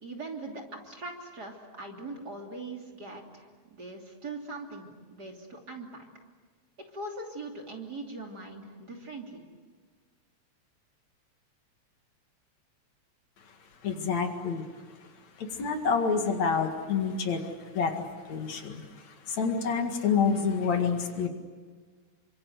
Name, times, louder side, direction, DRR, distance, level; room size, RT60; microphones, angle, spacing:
voice 1, 0.0-6.1 6.9-9.4, right 2 dB, 35° right, 1 dB, 3.4 m, -41 dB
voice 2, 13.8-14.6 15.4-17.4 17.7-18.8 19.3-21.3, left 5 dB, 70° left, 5 dB, 3.3 m, -28 dB
28.5 x 25.5 x 8.1 m, 1.5 s
omnidirectional pair, 3.3 m